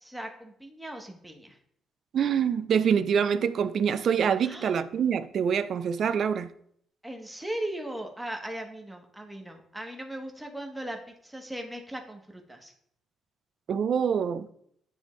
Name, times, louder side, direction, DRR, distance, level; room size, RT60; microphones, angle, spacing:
voice 1, 0.0-1.6 4.4-4.7 7.0-12.7, right 1 dB, 5° right, 1.2 m, -38 dB
voice 2, 2.1-6.5 13.7-14.5, right 7 dB, 60° right, 0.4 m, -25 dB
9.7 x 3.5 x 3.1 m
cardioid pair, 90°, 0 cm